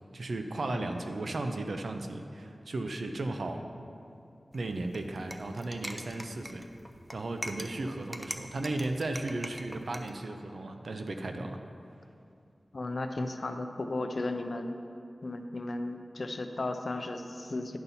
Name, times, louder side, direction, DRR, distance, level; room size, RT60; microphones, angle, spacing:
voice 1, 0.1-3.6 4.5-6.6 7.1-11.6, right 2 dB, 80° right, 5 dB, 0.6 m, -35 dB
sound 1, 4.5-10.1, equal, 5° right, 0.5 m, -44 dB
voice 2, 12.7-14.8 15.2-17.8, left 2 dB, 60° left, 6 dB, 0.5 m, -35 dB
10.5 x 4.0 x 5.6 m, 2.5 s
wide cardioid pair, 70°, 0 cm